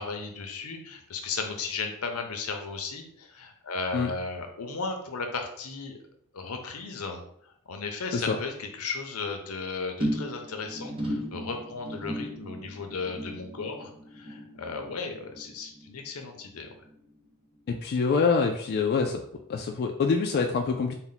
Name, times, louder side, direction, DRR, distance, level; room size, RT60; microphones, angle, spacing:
voice 1, 0.0-6.0 6.3-16.7, left 4 dB, 80° left, 4 dB, 0.7 m, -35 dB
sound 1, 10.0-16.6 16.8-17.3 17.6-17.7, equal, 25° right, 0.7 m, -36 dB
voice 2, 17.7-19.2 19.5-20.9, left 5 dB, 50° left, 3 dB, 0.3 m, -25 dB
4.1 x 2.1 x 4.0 m, 0.69 s
head